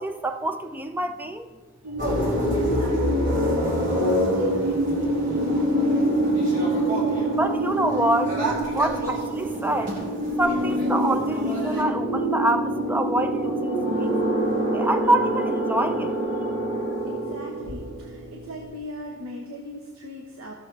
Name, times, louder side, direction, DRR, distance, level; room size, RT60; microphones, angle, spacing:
voice 1, 0.0-1.5 7.3-8.4 8.7-9.9 10.4-14.1 14.7-16.2, right 1 dB, 10° right, 8 dB, 0.5 m, -26 dB
sound 1, 1.8-18.7, right 1 dB, 70° right, 2.2 m, -26 dB
sound 2, 2.0-11.8, left 1 dB, 40° right, 2.2 m, -28 dB
voice 2, 2.0-6.6 17.0-20.5, left 1 dB, 90° right, 0 dB, 1.0 m, -40 dB
15.0 x 6.8 x 3.2 m, 1.4 s
head